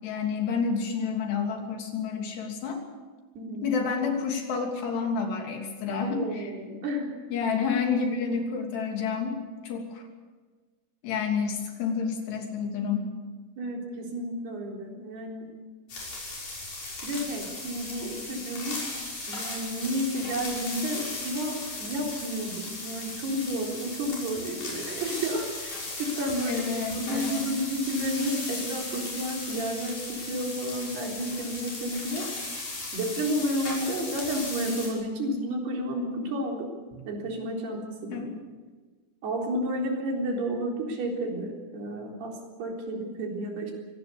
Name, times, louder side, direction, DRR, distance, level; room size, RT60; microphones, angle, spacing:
voice 1, 0.0-2.8 3.6-6.5 7.3-9.4 9.6-10.0 11.0-13.1 21.1-21.2 26.5-27.4 36.9-37.0 38.1-38.2, left 5 dB, 80° left, 2 dB, 5.1 m, -29 dB
voice 2, 3.4-3.7 6.0-7.5 13.6-15.6 17.0-18.8 19.3-26.6 26.9-32.3 32.9-36.7 37.1-38.3 39.2-43.7, right 1 dB, 75° right, 0 dB, 5.9 m, -31 dB
sound 1, 15.9-34.9, left 2 dB, 50° left, 7.9 m, -37 dB
24.0 x 18.5 x 7.0 m, 1.4 s
omnidirectional pair, 4.7 m